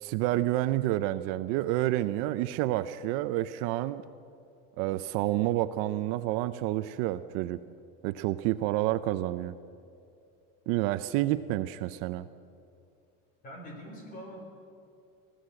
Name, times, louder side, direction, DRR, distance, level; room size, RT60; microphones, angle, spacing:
voice 1, 0.0-4.0 4.8-7.6 8.0-9.5 10.7-12.3, right 15 dB, 50° right, 12 dB, 0.5 m, -29 dB
voice 2, 13.4-14.4, equal, 30° left, 3 dB, 4.0 m, -43 dB
23.0 x 16.0 x 7.7 m, 2.5 s
cardioid pair, 180°, 30 cm